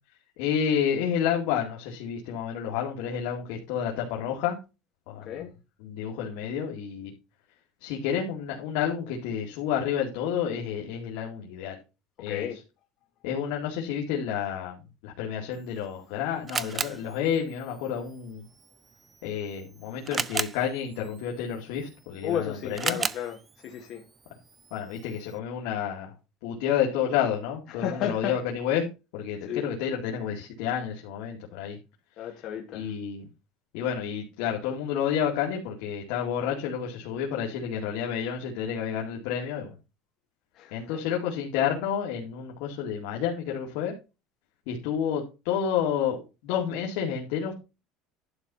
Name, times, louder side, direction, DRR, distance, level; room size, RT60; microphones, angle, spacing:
voice 1, 0.4-4.6 5.1-5.4 5.8-7.1 7.8-11.8 12.2-12.6 13.2-18.4 19.2-23.0 24.7-26.1 26.4-28.8 29.1-31.8 32.7-33.3 33.7-39.8 40.7-43.9 44.7-47.6, left 8 dB, 80° left, 2.3 m, -30 dB
voice 2, 12.3-12.6 22.2-23.4 23.6-24.0 27.7-28.3 29.5-29.6 32.2-32.9 40.5-41.0, left 9 dB, 50° left, 1.7 m, -33 dB
Camera, 15.5-25.4, right 5 dB, 20° right, 0.5 m, -37 dB
11.5 x 4.2 x 5.6 m
cardioid pair, 140°, 0 cm